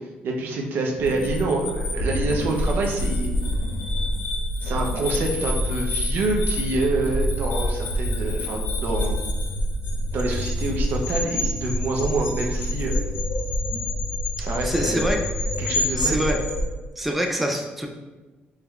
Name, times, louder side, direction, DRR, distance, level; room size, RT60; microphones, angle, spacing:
voice 1, 0.2-3.3 4.6-9.2 10.1-13.0 14.4-15.1 15.6-16.2, right 2 dB, 65° right, 1 dB, 0.7 m, -26 dB
sound 1, 1.0-16.7, left 1 dB, 80° left, 0.5 m, -26 dB
voice 2, 14.6-15.2 16.0-16.4 17.0-17.9, equal, 5° right, 2 dB, 0.4 m, -25 dB
4.7 x 3.2 x 2.4 m, 1.2 s
cardioid pair, 120°, 4 cm